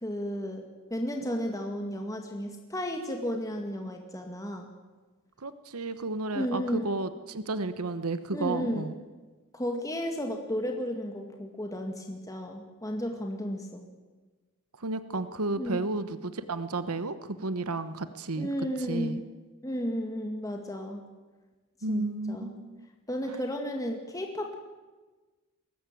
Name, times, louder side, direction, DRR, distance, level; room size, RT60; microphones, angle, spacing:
voice 1, 0.0-4.7 6.3-6.9 8.3-8.9 9.5-13.9 15.6-15.9 18.4-19.2 19.6-21.0 21.9-22.6 23.1-24.6, equal, 15° left, 3 dB, 2.0 m, -33 dB
voice 2, 5.4-8.9 14.8-18.5 18.9-19.2 21.8-22.9, right 2 dB, 80° right, 12 dB, 1.2 m, -32 dB
22.0 x 19.0 x 9.2 m, 1.3 s
head